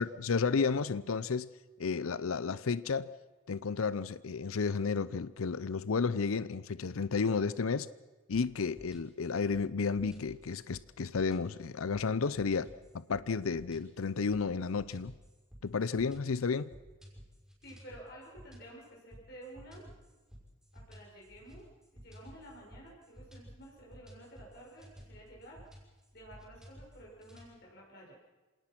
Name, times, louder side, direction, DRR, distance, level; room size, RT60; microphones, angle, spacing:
voice 1, 0.0-1.5 1.8-3.1 3.5-7.9 8.3-12.7 12.9-15.1 15.6-16.7, left 5 dB, 80° left, 17 dB, 0.6 m, -32 dB
sound 1, 8.3-27.5, equal, 5° right, 5.8 m, -54 dB
voice 2, 17.6-19.9 20.7-21.7 22.0-25.6 26.1-28.1, right 1 dB, 50° left, -3 dB, 5.8 m, -52 dB
27.0 x 18.5 x 6.0 m, 1.3 s
head